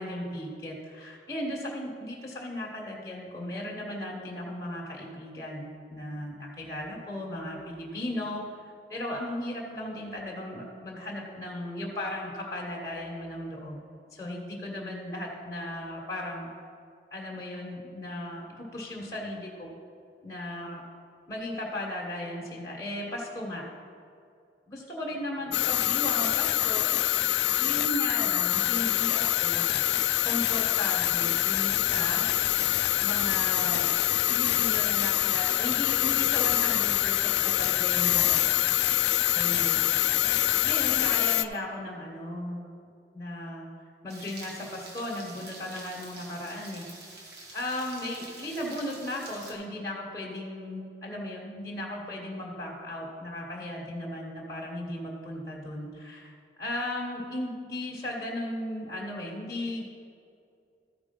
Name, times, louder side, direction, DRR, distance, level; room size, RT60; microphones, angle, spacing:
voice 1, 0.0-8.4 8.9-13.8 14.1-16.5 17.1-19.7 20.2-20.8 21.3-23.6 24.7-27.0 27.6-29.7 30.2-32.2 33.0-33.9 34.3-38.5 39.3-39.8 40.6-42.7 43.1-43.7 44.0-46.8 47.5-59.8, left 1 dB, 20° left, -4 dB, 1.3 m, -36 dB
sound 1, 25.5-41.4, left 14 dB, 70° left, 0.3 m, -25 dB
sound 2, 44.1-49.5, right 2 dB, 70° right, 1.6 m, -46 dB
13.5 x 4.9 x 5.3 m, 2.4 s
head